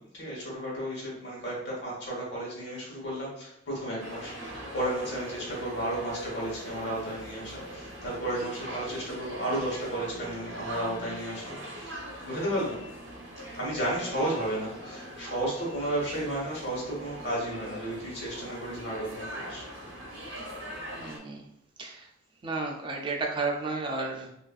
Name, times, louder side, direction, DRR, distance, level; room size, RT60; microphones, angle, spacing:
voice 1, 0.0-12.8 13.5-19.7, right 1 dB, 60° left, -4 dB, 1.1 m, -33 dB
sound 1, 4.0-21.2, equal, 70° right, 0.7 m, -41 dB
voice 2, 21.0-21.5 21.8-22.1 22.4-24.3, right 3 dB, 25° right, 0 dB, 0.4 m, -32 dB
3.0 x 2.4 x 2.4 m, 0.79 s
head